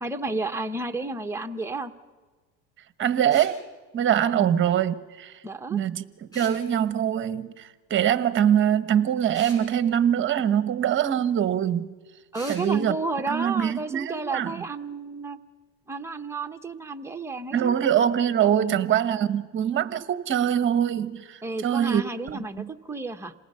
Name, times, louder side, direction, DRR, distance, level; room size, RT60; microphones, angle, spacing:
voice 1, 0.0-1.9 5.4-5.8 12.3-15.4 15.9-17.7 18.6-18.8 21.4-23.3, right 3 dB, 5° right, 5 dB, 1.1 m, -32 dB
voice 2, 3.0-3.6 3.9-5.3 5.7-6.0 6.3-11.9 12.5-12.9 13.3-14.6 17.5-22.0 22.3-22.7, right 9 dB, 35° right, 12 dB, 1.2 m, -23 dB
sound 1, 3.3-3.6 6.3-6.6 9.3-9.6 12.3-12.7, right 1 dB, 10° left, 7.1 m, -42 dB
27.5 x 19.0 x 5.6 m, 1.3 s
supercardioid pair, 115°, 35 cm